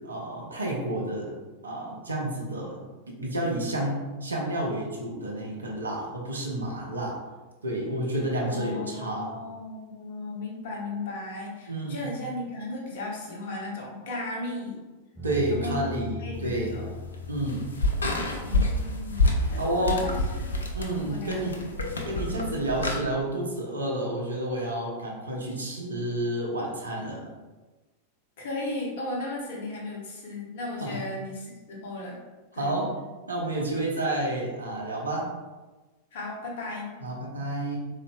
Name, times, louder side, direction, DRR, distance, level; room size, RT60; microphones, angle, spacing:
voice 1, 0.0-1.4 1.6-7.2 7.6-9.3 11.7-12.1 15.2-16.8 17.3-17.7 19.6-20.0 20.7-21.6 22.0-27.2 30.8-31.0 32.5-32.9 33.3-35.3 37.0-37.8, right 1 dB, 75° right, -1 dB, 0.6 m, -30 dB
voice 2, 8.5-14.8 15.5-15.9 16.2-16.9 18.3-20.6 21.0-21.5 21.9-22.0 28.4-32.2 32.5-32.7 36.1-36.9, left 2 dB, 55° left, -3 dB, 0.8 m, -36 dB
sound 1, 15.1-20.7, left 3 dB, 10° left, 0.6 m, -41 dB
sound 2, 16.3-23.0, left 2 dB, 70° left, 0.4 m, -29 dB
3.9 x 2.4 x 2.3 m, 1.2 s
figure-of-eight pair, 90°, 0 cm